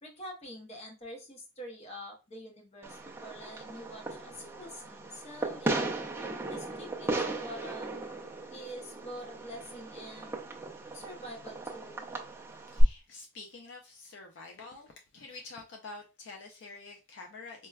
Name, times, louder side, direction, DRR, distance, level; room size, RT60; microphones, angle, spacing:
voice 1, 0.0-5.9 6.5-8.0 8.5-10.4 10.9-12.1, equal, 30° left, 0.7 m, -46 dB
Fireworks, 2.8-12.8, right 2 dB, 10° right, 0.4 m, -36 dB
voice 2, 12.6-17.7, left 3 dB, 55° left, 0.4 m, -47 dB
4.4 x 2.1 x 2.3 m
head